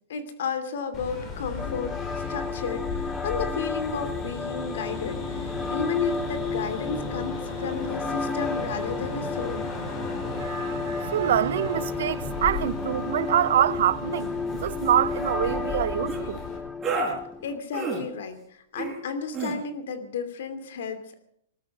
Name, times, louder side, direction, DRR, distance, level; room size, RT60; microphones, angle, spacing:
voice 1, 0.1-2.0 2.3-9.7 17.4-21.1, left 5 dB, 75° left, 2.9 m, -33 dB
sound 1, 0.9-16.6, left 3 dB, 25° left, 5.2 m, -36 dB
sound 2, 1.6-17.6, left 4 dB, 5° left, 1.0 m, -33 dB
voice 2, 10.4-16.5, right 11 dB, 70° right, 0.6 m, -25 dB
sound 3, 14.1-14.3 14.6-14.9 16.1-16.2 16.8-17.1 17.7-18.0 18.8-19.0 19.3-19.5, right 3 dB, 15° right, 4.9 m, -30 dB
20.0 x 13.0 x 5.5 m
hypercardioid pair, 145°, 0 cm